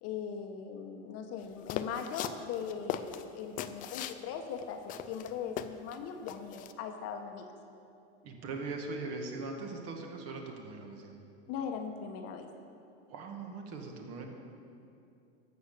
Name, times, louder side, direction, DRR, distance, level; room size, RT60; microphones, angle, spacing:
voice 1, 0.0-7.5 11.5-12.5, left 7 dB, 45° left, 5 dB, 1.1 m, -39 dB
sound 1, 1.7-4.2 4.6-4.7 4.9-6.0 6.3-6.7, left 11 dB, 25° left, 0.3 m, -38 dB
voice 2, 8.2-11.2 13.1-14.2, right 3 dB, 45° right, 2 dB, 1.8 m, -40 dB
12.0 x 6.9 x 6.7 m, 2.6 s
supercardioid pair, 130°, 34 cm